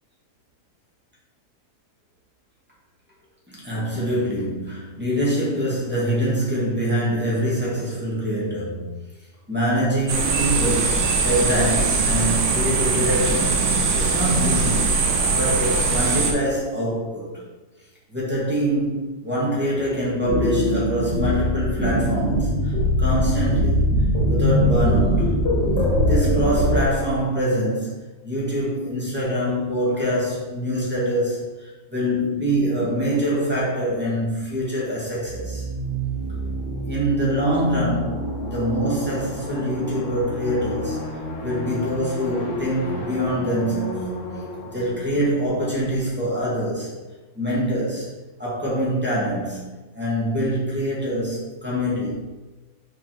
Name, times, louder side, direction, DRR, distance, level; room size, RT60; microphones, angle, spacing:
voice 1, 3.5-8.9 9.5-15.0 15.3-17.3 18.1-22.7 23.0-23.9 24.3-25.4 26.0-27.9 28.2-35.6 36.8-38.2 38.5-41.0 41.4-44.1 44.7-46.9 47.4-48.1 48.4-49.6 49.9-52.1, equal, 5° right, -7 dB, 1.8 m, -24 dB
sound 1, 10.1-16.3, right 4 dB, 55° right, 1.0 m, -21 dB
sound 2, 19.8-26.9, equal, 90° left, 2.0 m, -21 dB
sound 3, 35.2-46.7, equal, 50° left, 1.5 m, -31 dB
5.4 x 4.1 x 4.5 m, 1.2 s
omnidirectional pair, 1.8 m